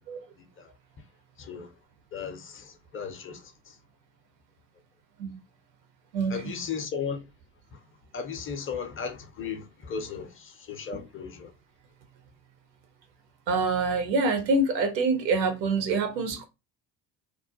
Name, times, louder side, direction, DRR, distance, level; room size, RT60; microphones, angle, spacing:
voice 1, 0.3-0.7 1.4-1.7 2.1-3.8 6.3-7.2 7.7-7.8 8.1-11.5, left 6 dB, 25° left, 0.6 m, -36 dB
voice 2, 6.1-6.5 10.9-11.0 13.5-16.5, right 3 dB, 85° right, 0.7 m, -26 dB
2.3 x 2.0 x 2.7 m
hypercardioid pair, 55°, 49 cm